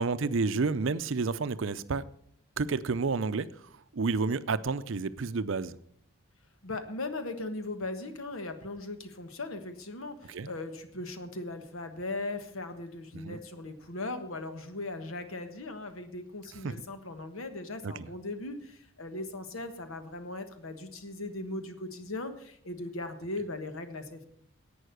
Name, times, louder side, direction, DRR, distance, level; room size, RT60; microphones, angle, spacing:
voice 1, 0.0-2.0 2.6-3.5 3.9-5.8 10.3-10.5 13.2-13.4 16.6-16.7 17.8-17.9, right 4 dB, 65° right, 0.5 m, -30 dB
voice 2, 6.6-24.3, left 2 dB, 75° left, 1.4 m, -38 dB
11.0 x 8.6 x 6.7 m
head